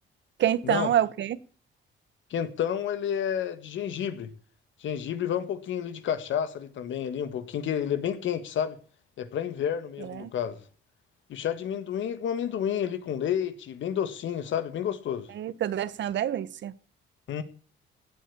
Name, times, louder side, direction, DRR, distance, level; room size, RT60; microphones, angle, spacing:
voice 1, 0.4-1.4 10.0-10.3 15.3-16.7, right 11 dB, 65° right, 1.1 m, -27 dB
voice 2, 2.3-4.3 4.8-8.8 9.2-10.6 11.3-15.3 17.3-17.4, left 9 dB, 70° left, 1.8 m, -30 dB
17.0 x 8.3 x 7.0 m
cardioid pair, 90°, 20 cm